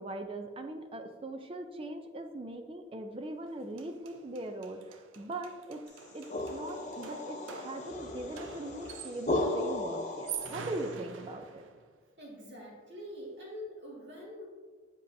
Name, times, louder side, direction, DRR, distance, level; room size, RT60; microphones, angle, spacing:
voice 1, 0.0-5.8 6.1-11.6, right 1 dB, 30° right, 6 dB, 0.4 m, -40 dB
sound 1, 3.5-3.6 3.8-9.4 10.1-11.9, right 7 dB, 90° right, 0.5 m, -45 dB
sound 2, 5.9-10.9, left 2 dB, 40° left, 0.8 m, -36 dB
voice 2, 12.2-14.4, left 1 dB, 60° right, -4 dB, 2.0 m, -45 dB
8.1 x 5.4 x 2.6 m, 1.5 s
head